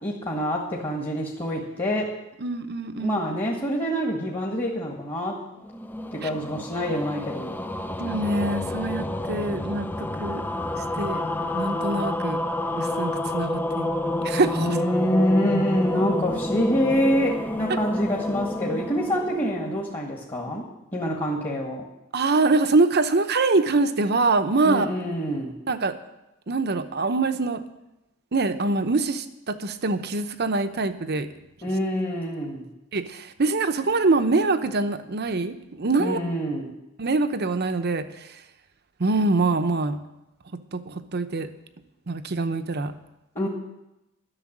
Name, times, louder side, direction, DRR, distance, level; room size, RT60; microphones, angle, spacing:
voice 1, 0.0-2.1 3.0-5.4 6.1-7.6 14.6-20.6 20.9-21.8 24.6-25.5 31.6-32.7 36.0-36.7 43.3-43.5, equal, 25° left, -1 dB, 1.7 m, -26 dB
voice 2, 2.4-3.2 6.2-6.3 8.0-10.4 11.0-11.2 11.5-12.4 12.7-14.7 22.1-24.9 25.7-26.0 26.5-27.6 28.3-31.3 32.9-36.2 37.0-38.0 39.0-40.0 40.7-41.5 42.1-42.9, right 3 dB, 50° right, 9 dB, 0.8 m, -24 dB
sound 1, 5.6-20.1, left 1 dB, 10° left, 0.4 m, -29 dB
12.0 x 7.0 x 9.9 m, 0.95 s
head